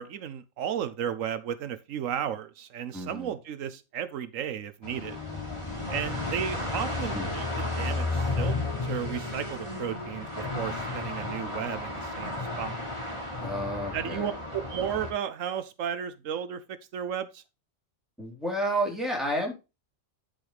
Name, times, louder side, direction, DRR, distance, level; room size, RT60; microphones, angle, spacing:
voice 1, 0.0-5.2 5.9-8.6 8.8-12.8 13.9-17.4, right 9 dB, 85° right, 1.2 m, -34 dB
voice 2, 2.9-3.3 7.1-7.3 13.4-14.3 18.2-19.5, right 1 dB, ahead, 3.8 m, -31 dB
sound 1, 4.8-15.1, left 2 dB, 20° left, 2.9 m, -33 dB
11.5 x 5.6 x 3.3 m
omnidirectional pair, 1.3 m